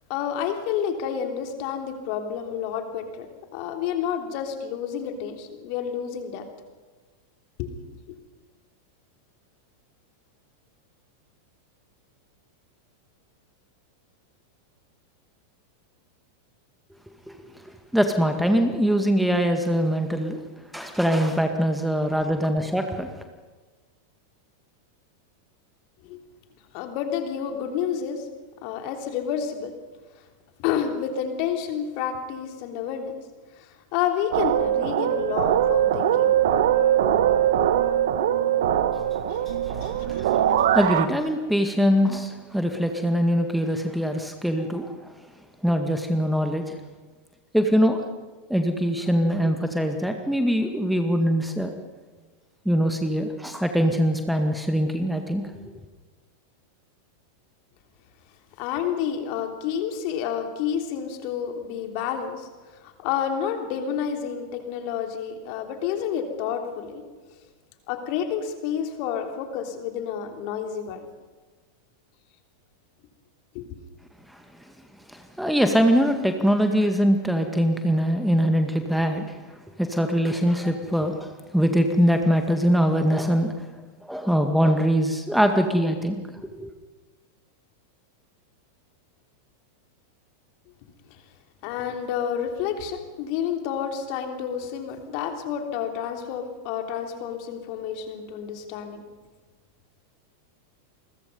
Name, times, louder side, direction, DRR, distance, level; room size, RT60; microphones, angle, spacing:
voice 1, 0.1-3.3 3.5-6.5 7.6-7.9 26.0-26.2 26.7-28.3 28.6-29.7 30.6-33.1 33.6-36.4 39.3-40.4 49.4-49.5 58.6-67.0 67.3-67.4 67.9-71.1 73.5-73.7 91.1-91.2 91.6-99.0, left 8 dB, 45° left, 5 dB, 3.3 m, -30 dB
voice 2, 17.6-20.4 20.7-23.1 39.7-45.1 45.6-46.8 47.5-48.0 48.5-51.7 52.7-55.5 74.3-74.4 75.1-79.2 79.8-83.7 84.0-86.7, equal, ahead, 6 dB, 2.0 m, -23 dB
sound 1, 34.3-41.1, right 10 dB, 55° right, 1.3 m, -22 dB
29.0 x 22.5 x 5.4 m, 1.3 s
figure-of-eight pair, 90°, 0 cm